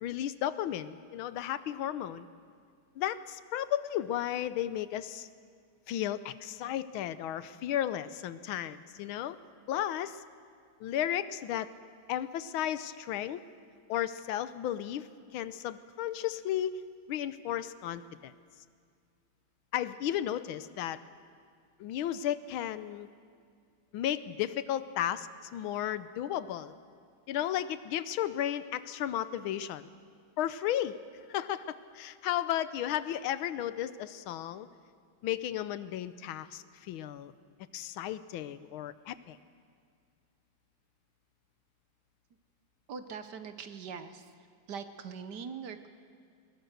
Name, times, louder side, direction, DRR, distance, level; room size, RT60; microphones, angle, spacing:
voice 1, 0.0-2.3 3.0-5.3 5.9-9.4 9.7-10.2 10.8-11.7 12.1-13.4 13.9-15.1 15.3-16.8 17.1-18.3 19.7-21.0 21.8-23.1 23.9-26.7 27.3-29.8 30.4-31.0 31.3-34.7 35.2-37.3 37.7-39.4, left 11 dB, 85° left, 14 dB, 1.5 m, -34 dB
voice 2, 42.9-44.3 44.7-45.9, right 6 dB, 60° right, 10 dB, 1.4 m, -42 dB
21.0 x 20.5 x 6.6 m, 2.2 s
omnidirectional pair, 2.2 m